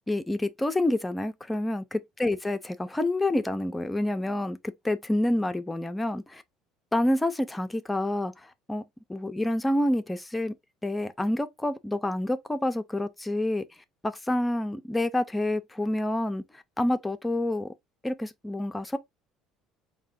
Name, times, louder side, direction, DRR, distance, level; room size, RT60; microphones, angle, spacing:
voice 1, 0.1-6.4 6.9-8.8 9.1-10.5 10.8-13.7 14.0-16.4 16.8-17.7 18.0-19.0, left 1 dB, 10° left, 0.5 m, -28 dB
4.6 x 2.2 x 3.6 m
cardioid pair, 110°, 0 cm